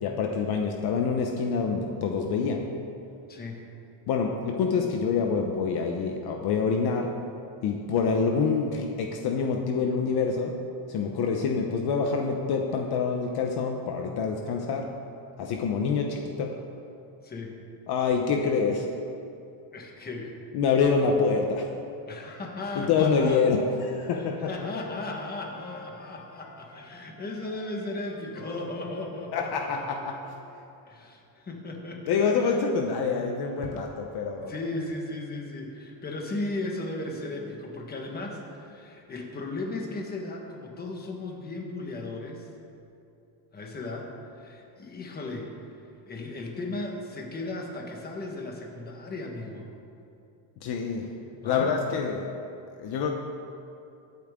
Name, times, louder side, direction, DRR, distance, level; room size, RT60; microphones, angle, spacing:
voice 1, 0.0-2.7 4.1-7.2 7.6-10.6 10.9-14.9 15.4-16.6 17.9-18.9 20.5-21.7 22.7-24.5 29.3-30.3 32.1-34.5 50.6-51.1 51.4-52.3 52.8-53.1, left 5 dB, 50° left, 2 dB, 0.9 m, -26 dB
voice 2, 3.3-3.7 17.2-17.6 19.7-20.4 22.1-23.4 24.1-29.9 30.9-32.6 34.4-42.5 43.5-45.8 46.1-49.7 51.4-51.7, left 2 dB, 20° left, 1 dB, 1.4 m, -36 dB
Wind instrument woodwind instrument, 24.0-26.9 27.1-30.6, left 2 dB, 70° left, 3.3 m, -49 dB
22.0 x 8.6 x 3.7 m, 2.6 s
cardioid pair, 180°, 49 cm